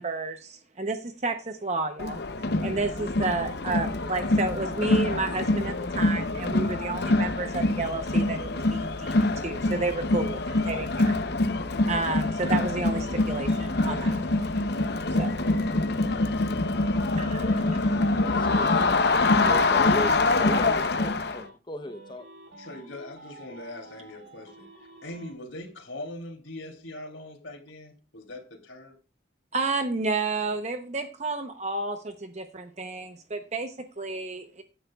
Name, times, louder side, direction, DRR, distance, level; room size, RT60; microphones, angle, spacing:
voice 1, 0.0-2.2 2.6-11.1 11.9-14.2 15.2-15.3 17.2-17.6 29.5-34.6, right 3 dB, 35° right, 0.8 m, -31 dB
Crowd, 2.0-21.4, left 2 dB, 55° left, 0.8 m, -25 dB
sound 1, 12.1-16.3 16.7-21.5 21.8-25.3, right 2 dB, 75° right, 6.3 m, -50 dB
voice 2, 18.3-19.0 19.4-22.3, left 1 dB, 25° left, 0.8 m, -36 dB
voice 3, 22.6-29.0, left 1 dB, 90° left, 2.9 m, -41 dB
16.0 x 10.0 x 2.4 m
head